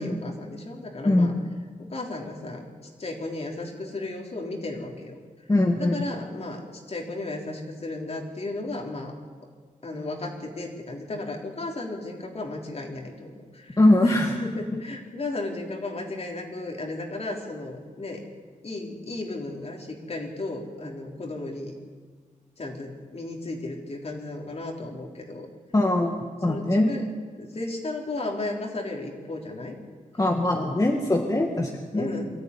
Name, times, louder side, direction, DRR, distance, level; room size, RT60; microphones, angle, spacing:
voice 1, 0.0-1.3 1.8-2.7 3.0-5.2 5.8-9.1 9.8-18.2 18.6-21.7 22.6-25.5 26.4-27.1 27.4-29.8 31.9-32.3, left 2 dB, 50° left, 1 dB, 3.9 m, -34 dB
voice 2, 5.5-6.0 13.8-14.3 14.7-14.8 25.7-26.9 30.2-32.1, left 1 dB, 25° left, 1 dB, 1.9 m, -22 dB
23.0 x 14.0 x 9.8 m, 1.5 s
wide cardioid pair, 100°, 14 cm